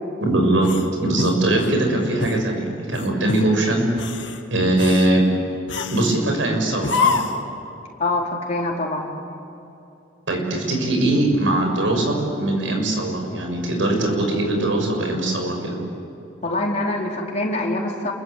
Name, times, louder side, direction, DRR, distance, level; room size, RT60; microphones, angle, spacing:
voice 1, 0.2-0.7 1.0-3.9 4.5-5.3 5.9-7.2 10.3-15.8, right 1 dB, 85° right, 2 dB, 6.4 m, -21 dB
sound 1, 0.6-1.8 2.2-2.4 2.9-3.5 3.9-4.4 4.8-5.1 5.7-6.2 6.8-7.5, left 5 dB, 70° left, 1.8 m, -26 dB
voice 2, 8.0-9.1 16.4-18.1, left 2 dB, 35° left, -1 dB, 4.2 m, -24 dB
29.5 x 23.0 x 8.5 m, 2.8 s
head